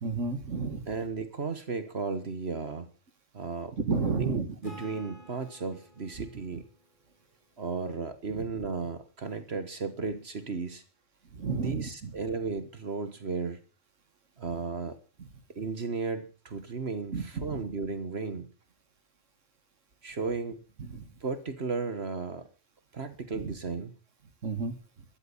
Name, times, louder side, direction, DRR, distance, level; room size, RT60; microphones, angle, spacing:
voice 1, 0.0-0.9 3.9-4.5 11.3-12.1 17.1-17.6 20.9-21.1 24.4-24.7, right 4 dB, 75° right, 11 dB, 2.2 m, -31 dB
voice 2, 0.8-2.9 3.3-3.8 4.1-6.7 7.6-10.8 11.5-13.6 14.4-15.0 15.5-18.5 20.0-20.6 21.2-22.5 22.9-23.9, right 4 dB, 55° right, 11 dB, 1.7 m, -34 dB
Acoustic guitar / Strum, 4.6-8.1, equal, 40° left, 4.5 m, -51 dB
13.5 x 12.5 x 7.2 m, 0.39 s
omnidirectional pair, 1.3 m